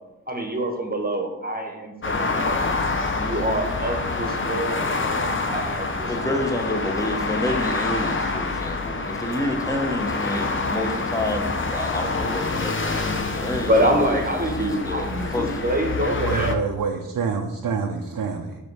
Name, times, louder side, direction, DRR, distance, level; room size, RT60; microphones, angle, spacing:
voice 1, 0.3-2.7 3.2-6.4 13.7-16.6, right 1 dB, 25° right, 3 dB, 1.0 m, -26 dB
sound 1, 2.0-16.6, left 3 dB, 35° left, 0.6 m, -27 dB
voice 2, 6.1-15.6, left 1 dB, 10° left, 3 dB, 0.9 m, -29 dB
voice 3, 16.2-18.6, right 5 dB, 80° right, 2 dB, 0.6 m, -27 dB
5.0 x 3.5 x 5.4 m, 1.1 s
wide cardioid pair, 70°, 34 cm